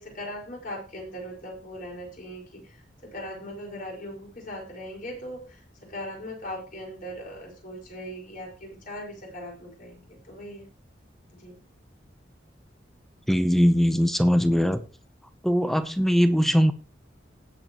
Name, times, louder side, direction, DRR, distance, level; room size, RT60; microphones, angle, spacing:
voice 1, 0.0-2.8 3.1-5.6 5.9-10.7 11.3-11.6, equal, 50° left, 0 dB, 5.1 m, -39 dB
voice 2, 13.3-14.8 15.4-16.7, equal, ahead, 11 dB, 0.7 m, -21 dB
17.5 x 7.9 x 3.0 m, 0.31 s
head